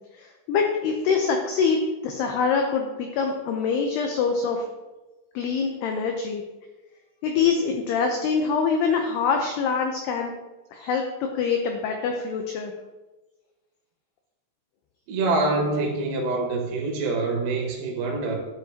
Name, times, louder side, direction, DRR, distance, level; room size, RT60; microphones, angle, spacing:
voice 1, 0.1-4.7 5.4-6.4 7.2-10.3 10.7-11.0 11.4-12.7, left 5 dB, 85° left, 3 dB, 2.3 m, -24 dB
voice 2, 15.1-18.4, right 3 dB, 85° right, 0 dB, 4.5 m, -25 dB
12.5 x 9.7 x 2.9 m, 1.2 s
omnidirectional pair, 5.8 m